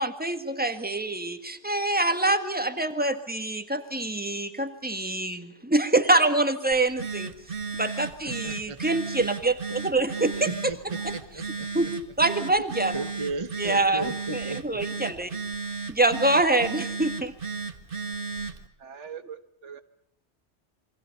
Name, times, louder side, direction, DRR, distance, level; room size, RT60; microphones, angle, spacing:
voice 1, 0.0-7.3 7.8-10.5 11.7-11.9 12.2-13.0 13.6-15.4 15.9-17.3, right 2 dB, 10° right, 8 dB, 1.8 m, -25 dB
Telephone, 6.7-18.7, right 4 dB, 50° right, 1.9 m, -35 dB
voice 2, 8.3-8.8 10.4-11.7 12.6-12.7 12.9-14.8, right 3 dB, 30° right, 9 dB, 1.1 m, -35 dB
voice 3, 18.8-19.8, right 8 dB, 80° right, 11 dB, 1.6 m, -42 dB
28.0 x 23.5 x 6.8 m, 0.67 s
omnidirectional pair, 1.2 m